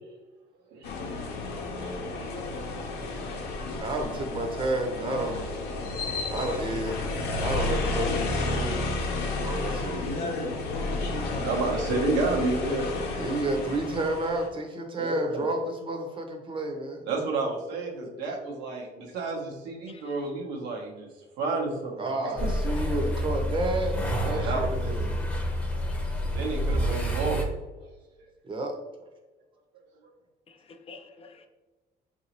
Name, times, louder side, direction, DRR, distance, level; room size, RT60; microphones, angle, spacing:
sound 1, 0.8-14.5, left 3 dB, 75° left, 0.7 m, -31 dB
voice 1, 1.7-2.1 3.3-3.4 11.3-13.0 14.9-15.5 17.1-21.1 21.4-22.1 22.4-22.5 24.2-25.0 26.3-27.4, right 3 dB, 85° right, 0.9 m, -30 dB
voice 2, 3.8-5.4 6.3-7.1 7.4-8.8 9.4-10.4 13.1-17.1 22.0-25.1 28.4-28.8, right 2 dB, 30° right, 0.7 m, -31 dB
voice 3, 19.9-20.2 25.9-26.4 30.5-31.5, left 4 dB, 35° left, 0.4 m, -50 dB
sound 2, 22.4-27.5, equal, 10° left, 0.7 m, -28 dB
3.8 x 2.7 x 2.9 m
cardioid pair, 110°, 17 cm